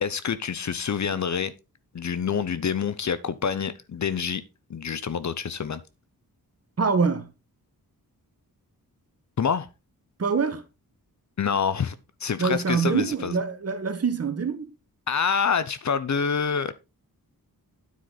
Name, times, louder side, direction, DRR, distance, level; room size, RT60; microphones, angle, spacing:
voice 1, 0.0-1.5 1.9-4.4 4.7-5.8 9.4-9.7 11.4-11.9 12.2-13.3 15.1-16.7, left 6 dB, 50° left, 0.8 m, -26 dB
voice 2, 6.8-7.3 10.2-10.6 12.4-14.7, right 5 dB, 40° right, 1.5 m, -25 dB
9.6 x 7.9 x 4.0 m
wide cardioid pair, 170°, 37 cm